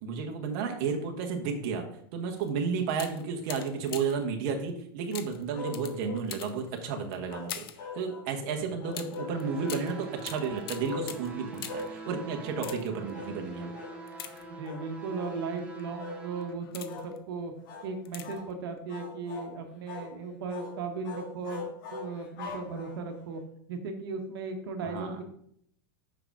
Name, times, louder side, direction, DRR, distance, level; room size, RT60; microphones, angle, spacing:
voice 1, 0.0-1.8 2.1-7.7 7.9-13.7 24.8-25.2, right 5 dB, 50° right, 3 dB, 1.3 m, -32 dB
sound 1, 2.4-2.5 2.9-4.3 5.1-7.9 8.9-12.0 12.5-13.1 14.1-14.9 15.6-15.8 16.4-17.2 18.0-18.5 18.8-18.9, left 10 dB, 85° left, 0.9 m, -43 dB
sound 2, 5.5-6.3 7.3-8.3 8.8-9.8 10.9-11.1 11.7-11.9 12.6-12.9 13.1-13.4 13.7-14.0 14.6-14.9 15.2-15.4 16.0-16.2 16.9-17.1 17.6-17.9 18.2-18.5 18.9-19.5 19.9-20.1 20.5-20.8 21.0-23.2, left 4 dB, 65° left, 2.3 m, -41 dB
sound 3, 9.2-16.5, right 4 dB, 10° right, 1.2 m, -44 dB
voice 2, 14.6-17.5 17.8-21.6 21.9-23.4 23.7-25.2, right 4 dB, 75° right, 4 dB, 1.3 m, -36 dB
5.8 x 4.9 x 5.9 m, 0.68 s
supercardioid pair, 155°, 12 cm